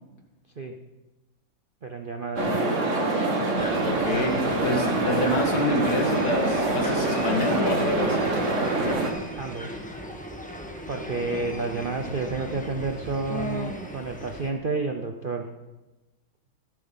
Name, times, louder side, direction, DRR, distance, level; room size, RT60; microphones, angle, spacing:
voice 1, 1.8-2.6 9.4-9.8 10.9-15.5, right 3 dB, 90° right, 4 dB, 0.4 m, -30 dB
sound 1, 2.4-9.1, right 2 dB, 40° right, 1.7 m, -25 dB
sound 2, 3.6-14.5, equal, 5° left, 1.0 m, -37 dB
voice 2, 3.8-8.2 11.3-11.4, left 1 dB, 55° left, 1 dB, 2.4 m, -28 dB
15.0 x 13.0 x 4.0 m, 1.1 s
omnidirectional pair, 2.1 m